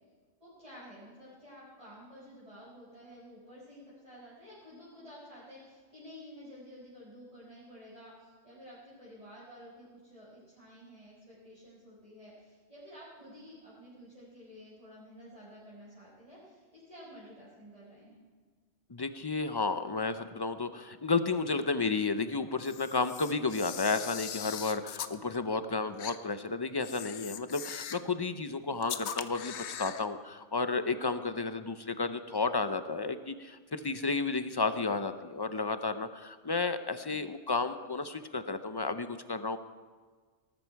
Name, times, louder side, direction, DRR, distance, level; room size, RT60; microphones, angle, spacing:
voice 1, 0.4-18.2, equal, 30° right, -10 dB, 4.8 m, -51 dB
voice 2, 18.9-39.6, left 4 dB, 35° left, 10 dB, 0.4 m, -32 dB
Camera, 22.6-25.2 26.0-26.2 26.8-28.1 28.8-30.1, left 9 dB, 65° left, 1.0 m, -40 dB
18.5 x 13.5 x 4.6 m, 1.5 s
omnidirectional pair, 1.3 m